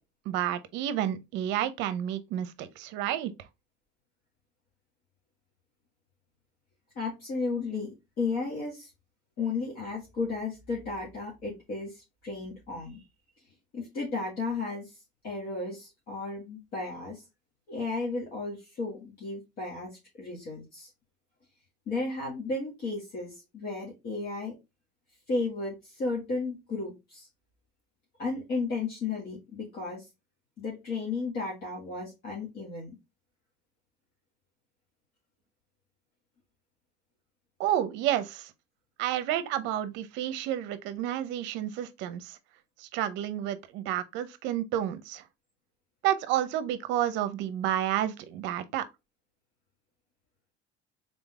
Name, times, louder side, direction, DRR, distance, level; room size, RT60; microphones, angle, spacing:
voice 1, 0.3-3.3 37.6-38.5 39.0-42.4 42.8-45.2 46.0-48.9, right 11 dB, 60° right, 0.7 m, -30 dB
voice 2, 6.9-8.9 9.4-13.0 13.7-14.9 15.2-17.2 17.7-20.9 21.9-24.5 25.3-27.3 28.2-30.0 30.6-33.0, left 3 dB, 45° left, 1.8 m, -34 dB
3.8 x 3.8 x 3.5 m
cardioid pair, 170°, 21 cm